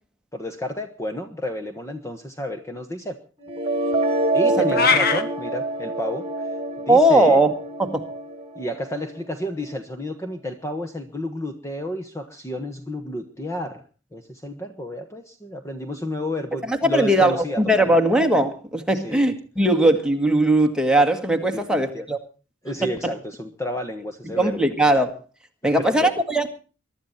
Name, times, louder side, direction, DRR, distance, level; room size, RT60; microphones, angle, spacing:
voice 1, 0.3-3.1 4.3-6.2 6.9-7.4 8.5-13.8 14.1-18.0 18.9-19.2 21.5-22.1 22.6-24.7 25.6-26.2, left 1 dB, 15° left, 6 dB, 1.3 m, -31 dB
sound 1, 3.4-9.4, right 2 dB, 30° right, 2.2 m, -26 dB
sound 2, 4.7-5.2, left 5 dB, 50° left, 1.6 m, -19 dB
voice 2, 6.9-7.5 7.8-8.1 16.7-22.2 22.8-22.9 24.2-25.2 25.6-26.5, right 1 dB, 5° right, 4 dB, 1.8 m, -19 dB
23.0 x 12.0 x 4.2 m, 0.37 s
head